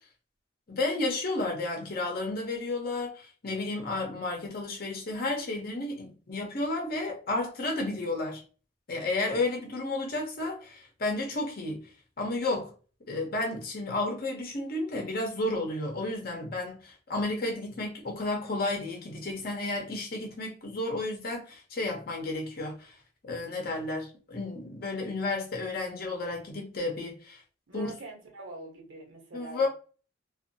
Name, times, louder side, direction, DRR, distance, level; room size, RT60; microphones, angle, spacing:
voice 1, 0.7-8.4 8.9-11.9 12.2-12.7 13.1-23.0 23.2-27.4 27.7-27.9 29.3-29.7, left 2 dB, 50° left, 0.7 m, -32 dB
voice 2, 27.7-29.7, right 3 dB, 75° right, 1.0 m, -43 dB
2.6 x 2.4 x 2.6 m
head